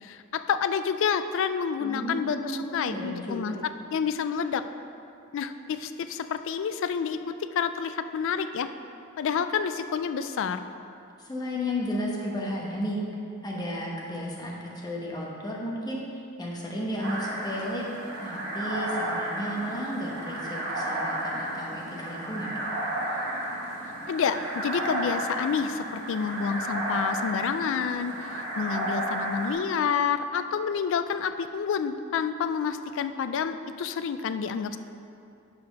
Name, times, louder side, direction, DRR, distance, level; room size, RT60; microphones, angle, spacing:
voice 1, 0.0-3.5 3.9-4.6 5.3-7.2 7.5-8.7 9.2-10.6 24.1-34.8, left 6 dB, 60° left, 10 dB, 0.3 m, -29 dB
voice 2, 1.8-3.6 11.2-13.0 13.4-16.0 16.4-17.8 18.2-22.5, equal, 20° left, -3 dB, 1.0 m, -33 dB
sound 1, 17.0-29.5, right 1 dB, 55° right, 1.2 m, -32 dB
5.7 x 4.8 x 5.9 m, 2.6 s
head